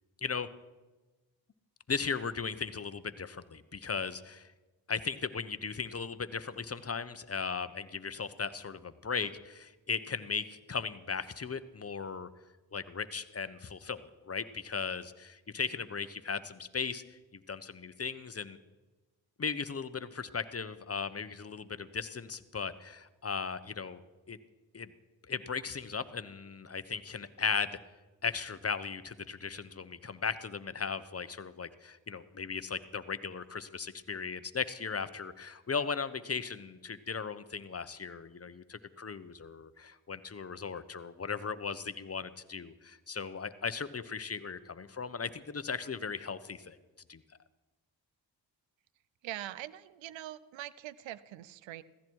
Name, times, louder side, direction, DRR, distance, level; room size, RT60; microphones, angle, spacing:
voice 1, 1.9-4.5 4.9-12.3 12.7-17.2 17.5-18.6 19.4-24.0 24.3-24.4 24.7-24.9 25.3-27.8 28.2-46.8 47.1-47.2, left 5 dB, 30° left, 13 dB, 1.0 m, -37 dB
voice 2, 49.2-51.8, right 14 dB, 85° right, 19 dB, 0.7 m, -43 dB
15.5 x 15.0 x 4.7 m, 1.2 s
supercardioid pair, 45°, 44 cm